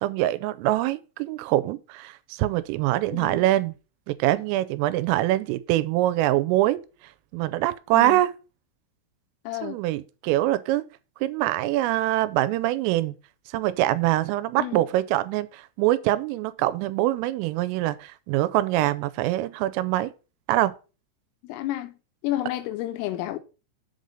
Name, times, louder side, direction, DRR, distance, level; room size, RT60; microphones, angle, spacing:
voice 1, 0.0-3.7 4.1-6.8 7.3-8.3 9.6-10.8 11.2-13.2 13.5-20.1 20.5-20.7, right 15 dB, 85° right, 3.2 m, -24 dB
voice 2, 3.1-3.4 7.9-8.2 9.4-9.8 14.6-14.8 21.4-23.4, left 14 dB, 90° left, 3.4 m, -31 dB
7.9 x 4.0 x 6.4 m
omnidirectional pair, 5.8 m